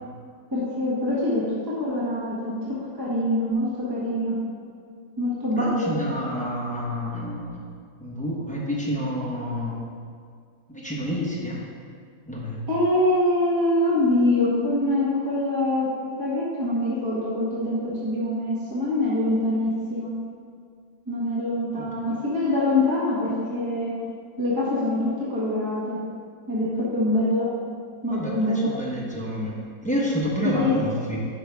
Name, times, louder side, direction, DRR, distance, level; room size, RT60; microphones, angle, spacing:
voice 1, 0.5-4.3 5.2-5.9 12.7-15.9 16.2-20.1 21.1-23.9 24.4-26.0 26.5-27.5 28.0-28.7 30.4-30.8, left 1 dB, 15° right, -8 dB, 1.2 m, -24 dB
voice 2, 5.5-7.6 8.0-9.8 10.7-11.6 12.3-12.6 21.7-22.1 28.1-29.5 29.8-31.2, equal, 5° left, -6 dB, 0.9 m, -29 dB
9.0 x 5.3 x 3.5 m, 2.1 s
omnidirectional pair, 1.9 m